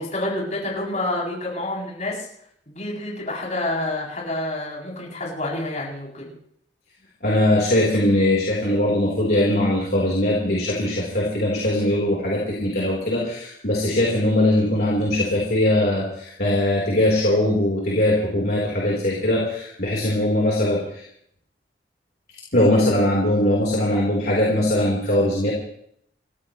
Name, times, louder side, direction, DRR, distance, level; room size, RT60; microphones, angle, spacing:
voice 1, 0.0-2.3 2.7-6.3, left 1 dB, 40° left, -4 dB, 7.8 m, -28 dB
voice 2, 7.2-21.0 22.5-25.5, left 1 dB, 60° left, -5 dB, 4.2 m, -21 dB
30.0 x 14.5 x 3.3 m, 0.69 s
head